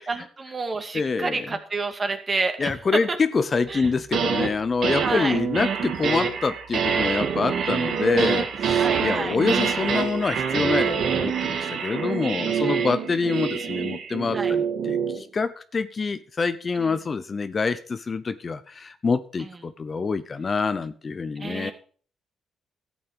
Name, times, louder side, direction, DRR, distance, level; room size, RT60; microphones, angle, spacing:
voice 1, 0.0-2.7 3.1-3.2 3.7-3.9 5.0-5.4 7.5-7.7 8.8-9.4 12.5-12.9 14.3-14.5 16.8-17.0 19.4-19.5 21.4-21.7, right 3 dB, 30° right, 6 dB, 2.2 m, -30 dB
voice 2, 0.9-1.5 2.6-21.7, left 4 dB, 35° left, 13 dB, 0.8 m, -26 dB
sound 1, 3.8-4.5 4.8-15.2, right 6 dB, 70° right, 2.0 m, -25 dB
13.0 x 8.6 x 5.1 m, 0.43 s
cardioid pair, 90°, 0 cm